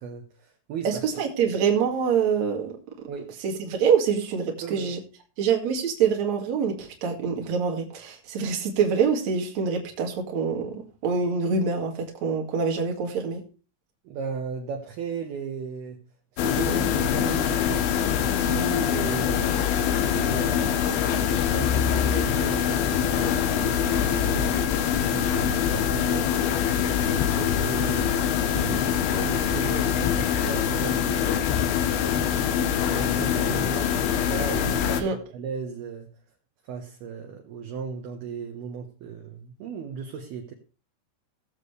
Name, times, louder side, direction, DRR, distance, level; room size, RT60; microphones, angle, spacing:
voice 1, 0.0-1.2 3.1-3.3 4.6-4.9 14.0-16.0 16.3-24.6 25.1-26.3 27.0-28.1 28.5-31.5 31.9-36.1 36.7-40.5, right 6 dB, 70° right, 2.6 m, -36 dB
voice 2, 0.8-2.8 3.4-5.0 5.4-13.4 35.0-35.2, right 6 dB, 50° right, 2.5 m, -25 dB
sound 1, 16.4-35.0, left 9 dB, 85° left, 2.3 m, -24 dB
18.5 x 7.5 x 3.3 m
omnidirectional pair, 6.0 m